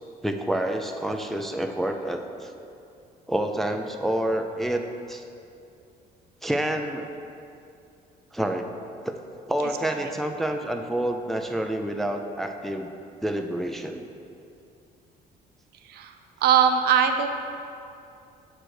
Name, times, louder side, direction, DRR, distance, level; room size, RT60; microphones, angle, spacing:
voice 1, 0.2-2.5 3.3-5.2 6.4-7.1 8.3-8.7 9.0-9.1 9.5-12.9 13.2-14.1, right 1 dB, ahead, 4 dB, 0.4 m, -28 dB
voice 2, 15.8-16.2 16.4-17.3, right 8 dB, 70° right, 6 dB, 0.6 m, -21 dB
7.8 x 3.4 x 6.2 m, 2.6 s
cardioid pair, 110°, 17 cm